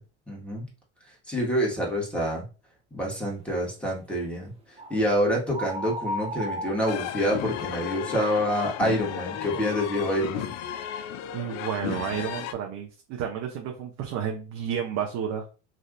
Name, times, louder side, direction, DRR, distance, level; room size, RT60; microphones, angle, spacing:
voice 1, 0.3-0.6 1.3-2.4 2.9-4.5 4.9-10.5, equal, 5° left, -4 dB, 1.6 m, -27 dB
sound 1, 4.8-5.0 5.5-7.6, equal, 15° right, 0.8 m, -34 dB
sound 2, 6.9-12.5, left 10 dB, 50° left, 0.5 m, -34 dB
voice 2, 11.3-15.4, right 8 dB, 45° right, 1 dB, 0.7 m, -31 dB
3.3 x 2.7 x 2.5 m, 0.33 s
supercardioid pair, 95°, 35 cm